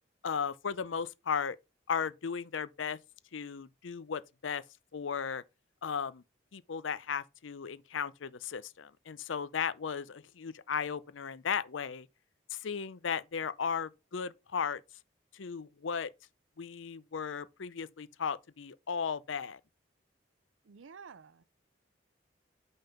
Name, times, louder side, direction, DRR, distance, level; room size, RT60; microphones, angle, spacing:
voice 1, 0.2-1.6 1.9-3.0 3.3-4.6 4.9-5.4 5.8-6.2 6.5-12.1 12.5-14.8 15.3-16.1 16.6-19.6, left 6 dB, 85° left, 0.6 m, -36 dB
voice 2, 20.6-21.5, right 5 dB, 90° right, 0.6 m, -51 dB
5.5 x 5.3 x 5.7 m
head